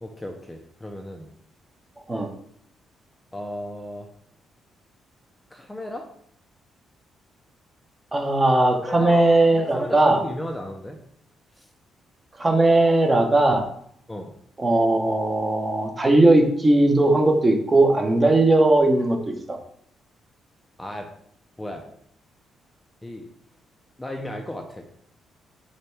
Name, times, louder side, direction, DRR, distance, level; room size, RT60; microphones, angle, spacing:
voice 1, 0.0-1.3 3.3-4.1 5.5-6.1 8.8-11.0 11.6-11.7 14.1-14.3 20.8-21.1 21.6-21.9 23.0-23.3 24.0-24.9, left 1 dB, 10° left, 3 dB, 0.5 m, -35 dB
voice 2, 8.1-10.2 12.4-13.6 14.6-19.2 19.5-19.6, right 2 dB, 20° right, 4 dB, 0.8 m, -18 dB
5.1 x 2.2 x 4.5 m, 0.66 s
cardioid pair, 100°, 0 cm